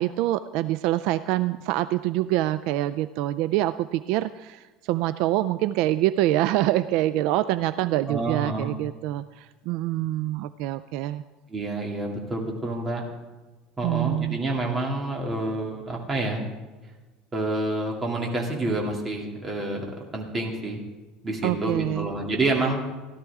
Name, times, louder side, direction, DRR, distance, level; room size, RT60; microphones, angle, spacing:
voice 1, 0.0-11.2 13.8-14.4 21.4-22.1, right 15 dB, 65° right, 14 dB, 0.3 m, -25 dB
voice 2, 8.1-8.7 11.5-13.0 13.8-16.4 17.3-20.8 21.2-22.8, right 2 dB, 20° right, -1 dB, 2.6 m, -28 dB
17.0 x 12.5 x 3.6 m, 1.2 s
cardioid pair, 140°, 0 cm